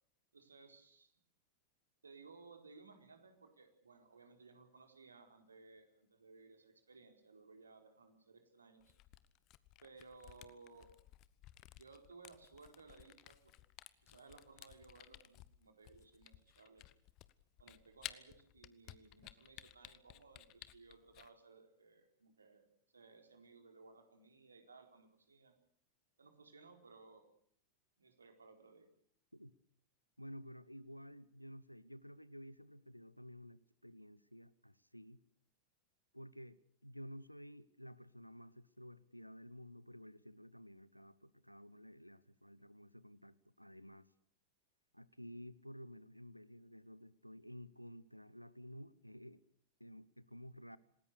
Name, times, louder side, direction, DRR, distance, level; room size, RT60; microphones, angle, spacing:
voice 1, 0.3-1.1 2.0-8.9 9.8-10.9 11.8-13.5 14.0-16.8 17.6-22.6 22.9-25.5 26.2-27.3 28.0-28.9, right 4 dB, 75° right, 4.3 m, -60 dB
Camera, 8.8-21.3, left 17 dB, 40° left, 1.2 m, -56 dB
voice 2, 30.2-35.2 36.1-44.1 44.9-49.4 49.8-50.8, equal, 90° left, 1.0 m, -53 dB
27.5 x 19.5 x 6.7 m
figure-of-eight pair, 90°, 0 cm